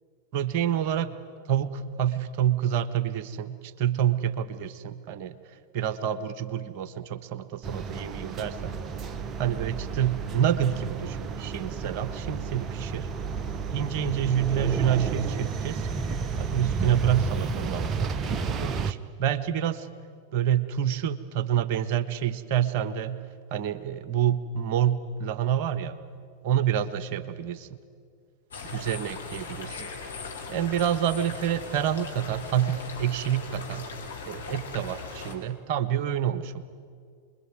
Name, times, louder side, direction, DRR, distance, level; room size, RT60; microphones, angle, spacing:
voice 1, 0.3-1.2 1.5-5.3 5.7-8.8 9.4-13.1 13.7-15.9 16.4-18.1 18.6-19.9 20.3-23.2 23.5-26.0 26.4-27.6 28.7-29.9 30.5-33.9 34.3-36.6, right 10 dB, 45° right, 13 dB, 1.4 m, -27 dB
sound 1, 7.6-18.9, right 5 dB, 25° right, 1.1 m, -32 dB
sound 2, 28.5-35.4, left 4 dB, 70° left, 4.6 m, -39 dB
28.0 x 22.0 x 9.3 m, 2.1 s
figure-of-eight pair, 90°, 0 cm